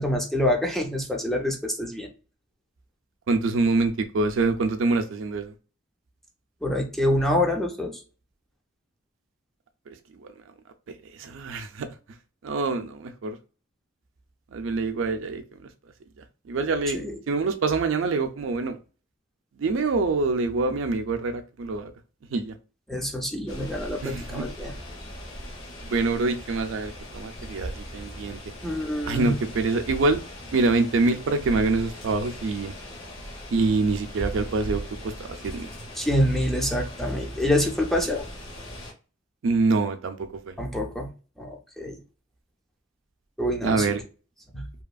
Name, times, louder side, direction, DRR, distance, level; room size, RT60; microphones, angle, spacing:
voice 1, 0.0-2.1 6.6-8.0 16.9-17.1 22.9-24.7 28.6-29.4 36.0-38.3 40.6-41.1 41.4-42.0 43.4-43.9 44.5-44.7, left 1 dB, ahead, 0.5 m, -26 dB
voice 2, 3.3-5.5 10.2-10.3 11.2-11.9 12.4-13.4 14.5-15.4 16.5-17.0 17.3-18.8 19.6-21.9 22.3-22.5 24.0-24.5 25.8-28.4 29.1-30.2 30.5-32.7 33.5-35.7 39.4-40.5 43.6-44.0, right 3 dB, 75° right, 0.4 m, -25 dB
sound 1, 23.5-38.9, left 1 dB, 85° left, 1.1 m, -41 dB
2.8 x 2.4 x 2.3 m
head